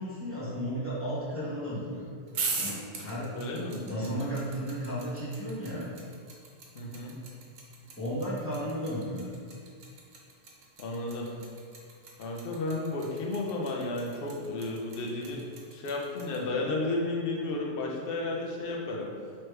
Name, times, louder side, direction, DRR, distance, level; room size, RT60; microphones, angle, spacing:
voice 1, 0.0-2.1 2.5-3.4 3.8-5.9 7.8-9.3, equal, 10° left, -11 dB, 1.2 m, -34 dB
sound 1, 2.3-16.4, right 4 dB, 75° right, 1.1 m, -39 dB
voice 2, 3.3-4.2 6.7-7.2 10.8-11.3 12.2-19.1, left 2 dB, 55° left, -1 dB, 0.8 m, -33 dB
3.3 x 3.1 x 4.6 m, 2.1 s
omnidirectional pair, 1.3 m